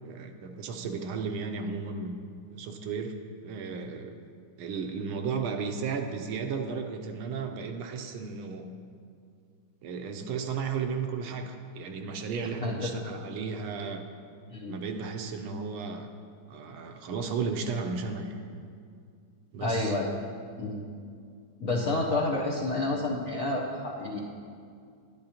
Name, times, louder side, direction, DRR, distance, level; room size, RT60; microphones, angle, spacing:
voice 1, 0.0-2.1 2.5-3.1 3.4-4.1 4.6-8.7 9.8-14.0 14.7-16.1 16.5-18.4 19.5-20.0, right 5 dB, 75° right, 5 dB, 1.4 m, -34 dB
voice 2, 12.6-13.1 14.5-14.7 19.6-20.2 20.6-20.8 21.6-24.2, left 2 dB, 65° left, -5 dB, 0.8 m, -29 dB
11.0 x 10.5 x 2.8 m, 2.3 s
omnidirectional pair, 2.4 m